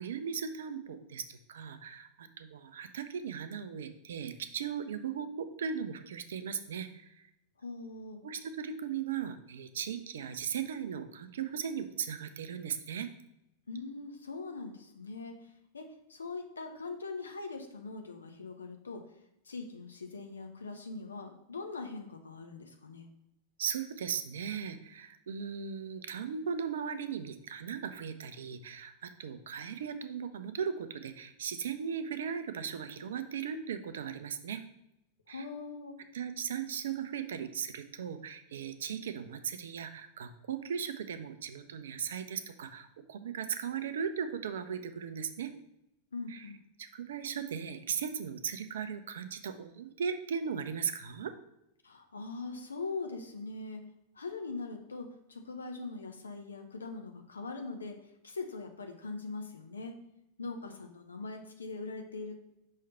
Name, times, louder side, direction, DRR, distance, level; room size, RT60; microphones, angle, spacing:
voice 1, 0.0-7.3 8.2-13.1 23.6-34.6 35.3-35.5 36.1-45.5 46.3-46.5 46.8-51.3, right 7 dB, 60° right, 10 dB, 0.5 m, -37 dB
voice 2, 7.6-8.2 13.7-19.1 19.4-23.1 35.3-36.0 46.1-46.6 51.8-53.8 54.1-58.0 58.2-60.0 60.4-62.4, left 3 dB, 75° left, 4 dB, 0.6 m, -42 dB
5.5 x 3.3 x 5.5 m, 0.82 s
figure-of-eight pair, 90°, 0 cm